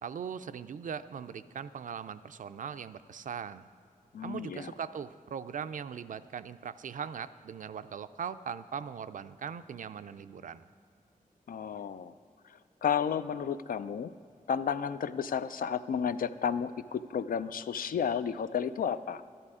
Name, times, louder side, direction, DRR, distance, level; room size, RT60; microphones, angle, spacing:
voice 1, 0.0-3.6 4.2-10.6, right 7 dB, 65° right, 13 dB, 0.4 m, -40 dB
voice 2, 4.1-4.7 11.5-12.1 12.4-14.1 14.5-19.2, left 7 dB, 80° left, 13 dB, 0.4 m, -32 dB
12.5 x 11.0 x 4.9 m, 2.5 s
wide cardioid pair, 110°, 14 cm